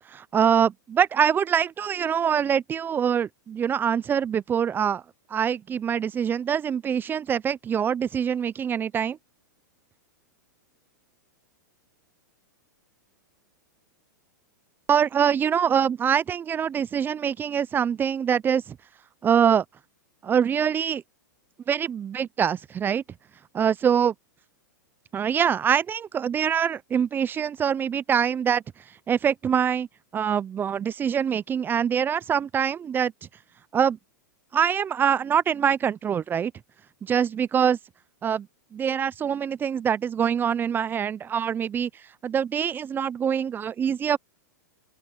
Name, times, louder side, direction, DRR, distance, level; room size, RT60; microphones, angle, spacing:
voice 1, 0.1-5.0 5.3-9.2 14.9-18.8 19.2-19.6 20.2-21.0 21.7-23.0 23.5-24.1 25.1-28.6 29.1-29.9 30.1-33.1 33.7-34.0 34.5-36.5 37.0-37.8 38.2-38.5 38.7-41.9 42.2-44.2, right 8 dB, 20° right, 0.5 m, -24 dB
open air
hypercardioid pair, 120°, 10 cm